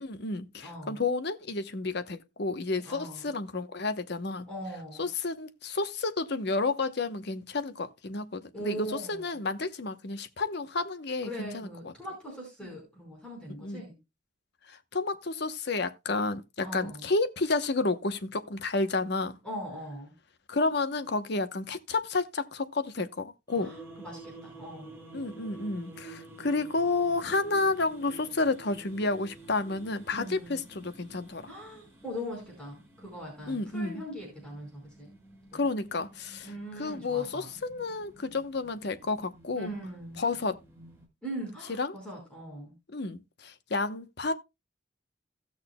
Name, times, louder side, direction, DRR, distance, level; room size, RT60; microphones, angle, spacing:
voice 1, 0.0-4.5 5.0-11.9 13.6-13.8 14.7-19.4 20.5-23.7 25.1-31.4 33.5-34.0 35.5-36.5 36.8-39.7 40.2-40.6 41.8-42.0 42.9-44.3, left 3 dB, 65° left, 1.0 m, -31 dB
voice 2, 0.6-1.0 2.8-3.3 4.5-5.1 8.5-9.4 11.2-14.0 16.6-17.1 19.4-20.1 23.6-25.0 30.1-30.7 31.5-35.1 35.5-35.6 36.4-37.5 39.6-40.2 41.2-42.7, equal, 5° left, 4.7 m, -41 dB
sound 1, 23.5-41.1, right 3 dB, 15° right, 3.7 m, -50 dB
17.5 x 6.5 x 2.3 m
head